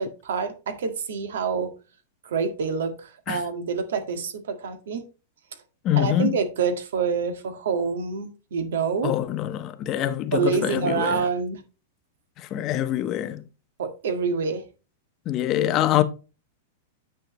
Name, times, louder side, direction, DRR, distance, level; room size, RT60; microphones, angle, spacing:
voice 1, 0.0-1.7 2.2-5.0 6.0-9.1 10.3-11.6 13.8-14.6, right 5 dB, 85° right, 1.9 m, -27 dB
voice 2, 5.8-6.4 9.0-11.3 12.4-13.4 15.3-16.0, left 12 dB, 30° left, 1.0 m, -24 dB
9.3 x 6.5 x 3.0 m
supercardioid pair, 150°, 0 cm